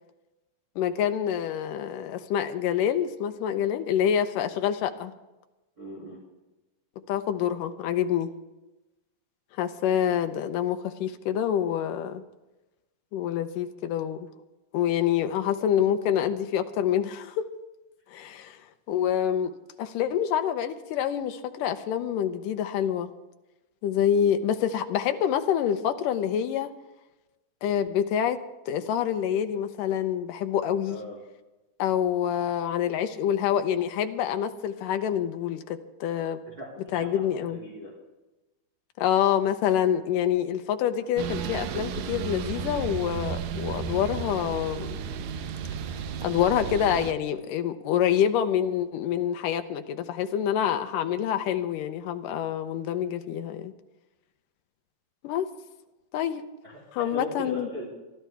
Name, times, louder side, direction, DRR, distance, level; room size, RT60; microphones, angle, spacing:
voice 1, 0.8-5.1 7.1-8.3 9.6-12.2 13.1-14.3 14.7-17.4 18.1-18.6 18.9-19.5 19.8-23.1 23.8-26.7 27.6-28.4 28.7-31.0 31.8-36.4 36.9-37.6 39.0-45.0 46.2-53.7 55.2-55.5 56.1-56.4 56.9-57.7, left 9 dB, 75° left, 8 dB, 2.2 m, -26 dB
voice 2, 5.8-6.2 30.9-31.2 36.5-37.1 37.5-37.9 56.6-57.9, equal, 25° right, -4 dB, 3.4 m, -38 dB
sound 1, 41.2-47.1, right 7 dB, 85° right, 1.6 m, -33 dB
24.5 x 12.5 x 3.5 m, 1.1 s
omnidirectional pair, 4.3 m